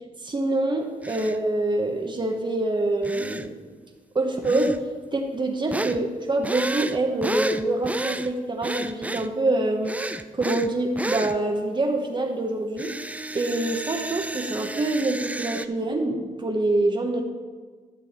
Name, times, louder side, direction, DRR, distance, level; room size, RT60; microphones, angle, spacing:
voice 1, 0.2-3.6 4.1-12.9 13.3-17.2, right 2 dB, 30° right, 2 dB, 1.2 m, -25 dB
sound 1, 1.0-1.4 3.0-3.5 4.4-4.8 5.7-6.0 6.4-8.3 8.6-9.3 9.8-10.7 11.0-11.4 12.8-15.7, right 2 dB, 10° right, 0.5 m, -31 dB
13.5 x 6.4 x 4.4 m, 1.4 s
cardioid pair, 80°, 15 cm